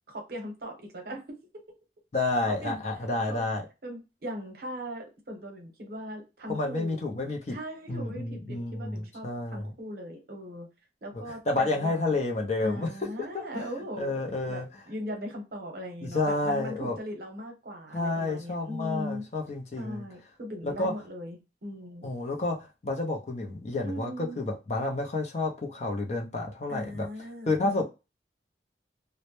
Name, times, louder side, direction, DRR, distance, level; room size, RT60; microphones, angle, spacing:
voice 1, 0.1-1.4 2.5-2.8 3.3-3.5 3.8-7.0 7.5-10.7 11.0-12.1 12.6-19.2 19.8-22.1 23.8-24.4 26.7-27.8, equal, 60° right, 0.7 m, -39 dB
voice 2, 2.1-3.6 6.5-7.6 7.9-9.7 11.5-12.9 13.3-14.7 16.0-17.0 17.9-20.0 20.6-20.9 22.0-27.1 27.4-27.8, left 2 dB, 40° left, 0.4 m, -30 dB
2.1 x 2.0 x 2.9 m
head